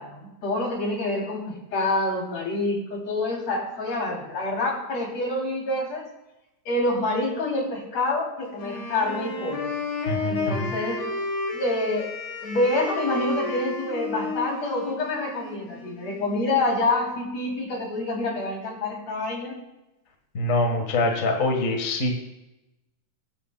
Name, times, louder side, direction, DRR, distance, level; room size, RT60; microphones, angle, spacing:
voice 1, 0.0-6.1 6.7-9.7 10.3-11.0 11.5-12.1 12.4-19.6, left 2 dB, 60° left, -1 dB, 4.2 m, -27 dB
Wind instrument woodwind instrument, 8.5-16.4, left 2 dB, 75° left, 3.9 m, -32 dB
voice 2, 10.1-10.7 20.3-22.2, left 2 dB, 40° left, 3 dB, 1.3 m, -24 dB
22.5 x 11.5 x 2.3 m, 0.96 s
omnidirectional pair, 3.5 m